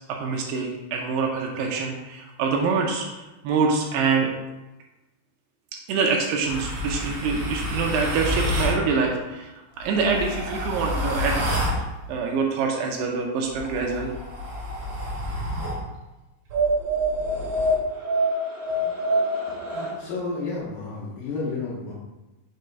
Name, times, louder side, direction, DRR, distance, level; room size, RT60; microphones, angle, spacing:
voice 1, 0.1-3.1 3.4-4.3 5.9-9.5 9.8-11.4 12.1-14.1, right 5 dB, 80° right, 1 dB, 2.6 m, -25 dB
sound 1, 6.4-8.8 9.8-11.8 13.5-15.8 16.5-19.9, equal, 55° right, 2.1 m, -27 dB
voice 2, 20.0-22.0, left 3 dB, 70° left, -5 dB, 2.3 m, -31 dB
6.6 x 3.4 x 5.2 m, 1.1 s
omnidirectional pair, 5.2 m